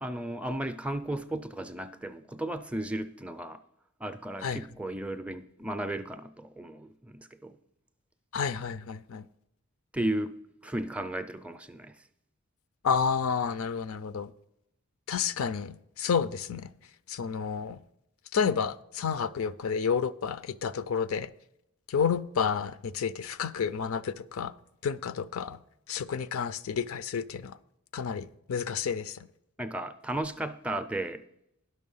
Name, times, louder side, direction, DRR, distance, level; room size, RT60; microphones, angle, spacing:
voice 1, 0.0-3.6 4.0-7.6 9.9-10.4 10.6-12.0 29.6-31.2, right 1 dB, 5° right, 0.4 m, -34 dB
voice 2, 8.3-9.2 12.8-14.3 15.1-16.7 17.1-17.8 18.3-21.3 21.9-24.5 24.8-25.6 25.9-27.6 27.9-29.3, left 6 dB, 75° left, 0.4 m, -30 dB
11.0 x 6.4 x 5.4 m
head